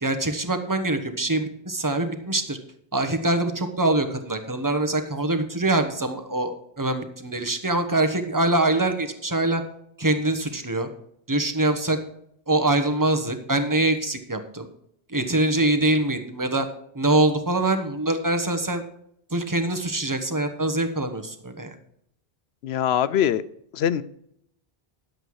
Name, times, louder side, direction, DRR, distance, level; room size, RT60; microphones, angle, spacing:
voice 1, 0.0-2.6 2.9-9.6 10.0-10.9 11.3-12.0 12.5-14.7 15.1-16.7 16.9-18.8 19.3-21.8, right 2 dB, 20° right, 7 dB, 1.1 m, -24 dB
voice 2, 22.6-23.4 23.7-24.0, left 10 dB, 85° left, 16 dB, 0.9 m, -22 dB
11.5 x 7.8 x 4.7 m, 0.70 s
omnidirectional pair, 1.0 m